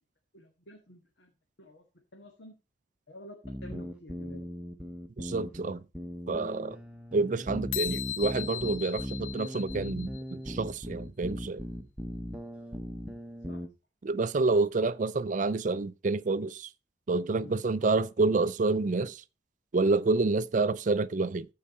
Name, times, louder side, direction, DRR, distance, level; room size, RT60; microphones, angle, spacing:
voice 1, 0.3-1.8 2.1-2.6 3.1-4.5 13.5-13.7 17.3-17.6, left 1 dB, 70° left, 1.6 m, -50 dB
sound 1, 3.4-13.7, equal, 5° right, 0.9 m, -39 dB
voice 2, 5.2-5.8 6.3-6.8 7.1-11.6 14.0-16.7 17.1-19.2 19.7-21.5, right 3 dB, 45° right, 0.4 m, -28 dB
sound 2, 7.7-10.3, left 11 dB, 90° left, 0.6 m, -37 dB
14.0 x 4.8 x 4.3 m
head